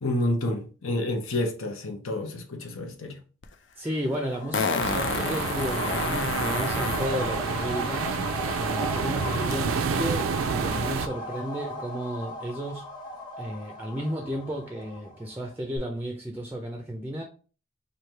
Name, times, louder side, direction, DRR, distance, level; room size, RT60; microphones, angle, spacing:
voice 1, 0.0-3.2, left 1 dB, 85° left, 0.8 m, -29 dB
Fart, 3.4-3.5 4.5-7.1 9.5-9.6, left 5 dB, 60° left, 0.4 m, -29 dB
voice 2, 3.8-8.2 8.5-12.9 13.4-17.2, equal, 10° right, 0.4 m, -33 dB
sound 1, 4.0-15.4 15.8-15.9, left 1 dB, 20° left, 0.7 m, -36 dB
sound 2, 4.8-11.1, right 5 dB, 80° right, 0.4 m, -29 dB
3.2 x 2.7 x 4.3 m
head